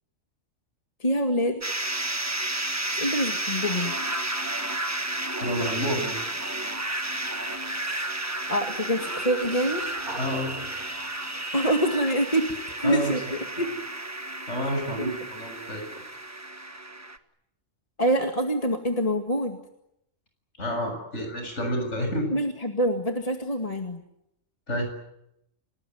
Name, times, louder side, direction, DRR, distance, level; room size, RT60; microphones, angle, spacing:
voice 1, 1.0-1.6 2.9-4.0 8.5-9.8 11.5-13.7 15.0-15.2 18.0-19.6 22.3-24.0, equal, 25° left, 4 dB, 2.0 m, -26 dB
sound 1, 1.6-17.2, right 1 dB, 15° right, 1.2 m, -32 dB
sound 2, 5.2-12.2, right 1 dB, 40° right, 5.1 m, -47 dB
voice 2, 5.4-6.2 10.2-10.5 12.8-13.1 13.6-13.7 14.5-16.0 20.6-22.3 24.7-24.9, equal, 60° left, 4 dB, 7.5 m, -29 dB
29.0 x 19.5 x 9.5 m, 0.81 s
omnidirectional pair, 1.4 m